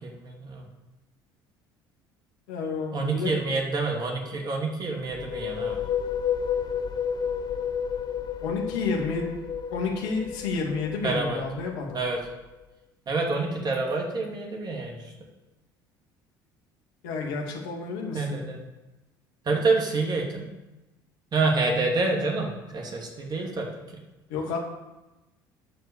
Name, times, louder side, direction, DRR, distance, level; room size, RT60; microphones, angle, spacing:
voice 1, 0.0-0.6 2.9-5.8 11.0-11.4 11.9-12.2 13.1-15.0 18.1-18.7 19.5-20.5 21.3-24.0, right 3 dB, 40° right, 1 dB, 2.6 m, -27 dB
voice 2, 2.5-3.3 8.4-9.3 9.7-12.0 17.0-18.4 24.3-24.6, left 4 dB, 75° left, 0 dB, 2.4 m, -30 dB
sound 1, 5.0-12.6, left 7 dB, 40° left, 0.9 m, -31 dB
12.0 x 4.8 x 7.0 m, 1.0 s
hypercardioid pair, 65°, 11 cm